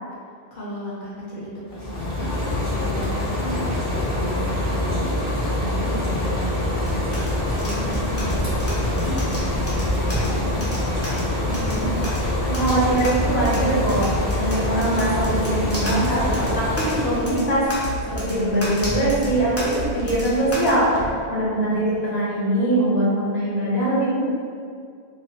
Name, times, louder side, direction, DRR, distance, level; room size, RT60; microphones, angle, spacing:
voice 1, 0.5-2.4 2.7-7.1 7.6-12.2 21.5-22.0, equal, 60° left, -7 dB, 0.7 m, -34 dB
sound 1, 1.7-17.5, left 1 dB, 20° right, 0.6 m, -25 dB
sound 2, 6.8-20.7, equal, 25° left, 0.3 m, -32 dB
voice 2, 12.5-14.1 14.4-24.2, right 1 dB, 75° left, -7 dB, 1.0 m, -22 dB
sound 3, 15.9-16.4 16.9-17.6 17.8-18.3 18.8-19.5 19.8-20.2 20.7-21.2, right 1 dB, 65° right, 0.8 m, -33 dB
2.4 x 2.1 x 2.6 m, 2.3 s
omnidirectional pair, 1.1 m